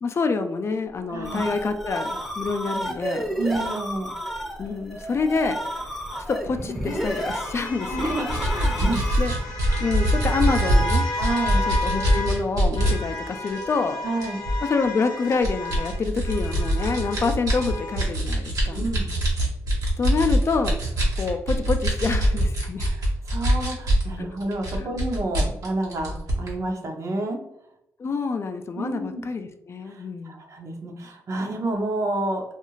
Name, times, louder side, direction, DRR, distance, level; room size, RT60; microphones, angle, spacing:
voice 1, 0.0-3.4 4.6-5.6 6.3-8.1 9.2-9.3 9.8-11.0 11.7-14.0 14.6-18.8 20.0-20.8 21.2-22.9 24.2-24.3 24.8-24.9 28.0-30.4, left 4 dB, 45° left, 7 dB, 0.3 m, -27 dB
sound 1, 1.0-9.5, equal, ahead, 0.6 m, -32 dB
voice 2, 1.1-1.5 3.4-4.1 7.8-9.0 11.2-11.7 14.0-14.4 18.7-19.1 22.8-27.4 28.7-29.2 29.8-32.4, right 2 dB, 55° right, 2 dB, 0.7 m, -29 dB
sound 2, 5.8-12.4 12.8-18.1, left 2 dB, 90° left, 0.7 m, -33 dB
sound 3, 8.3-12.9 13.5-13.6 14.2-14.7 15.3-24.1 24.4-26.5, right 1 dB, 75° right, 1.0 m, -23 dB
2.4 x 2.3 x 3.0 m, 0.80 s
cardioid pair, 65°, 6 cm